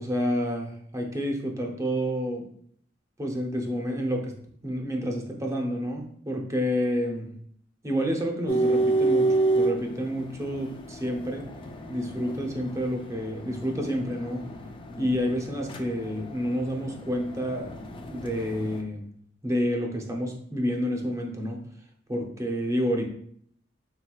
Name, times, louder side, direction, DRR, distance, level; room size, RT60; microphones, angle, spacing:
voice 1, 0.0-2.4 3.2-4.3 4.6-7.3 7.8-11.5 11.9-14.4 15.0-17.7 18.1-19.1 19.4-21.6 22.1-23.1, equal, 15° right, 2 dB, 0.6 m, -29 dB
sound 1, 8.5-18.8, right 2 dB, 25° left, 0.4 m, -30 dB
4.4 x 3.9 x 2.3 m, 0.65 s
head